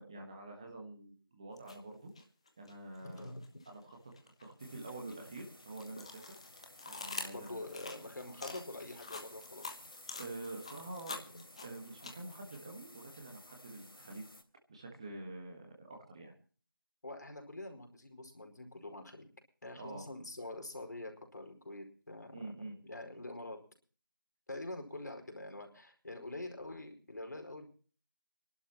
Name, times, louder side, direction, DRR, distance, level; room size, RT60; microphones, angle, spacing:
voice 1, 0.0-2.1 2.6-3.3 3.6-4.0 4.2-6.2 6.8-7.6 10.2-11.2 11.6-14.3 14.7-16.3 19.8-20.0 22.3-22.7, right 2 dB, 15° right, 1 dB, 1.4 m, -47 dB
sound 1, 1.6-1.8 2.2-3.7 4.1-12.6, left 3 dB, 15° left, 1.1 m, -46 dB
voice 2, 3.0-3.3 7.3-9.8 11.3-11.4 17.0-19.3 19.6-22.4 22.8-23.6 24.5-27.7, left 2 dB, 55° left, 3 dB, 5.0 m, -45 dB
sound 2, 4.6-14.4, left 1 dB, 90° left, 3.2 m, -56 dB
27.5 x 12.0 x 3.0 m, 0.40 s
figure-of-eight pair, 175°, 12 cm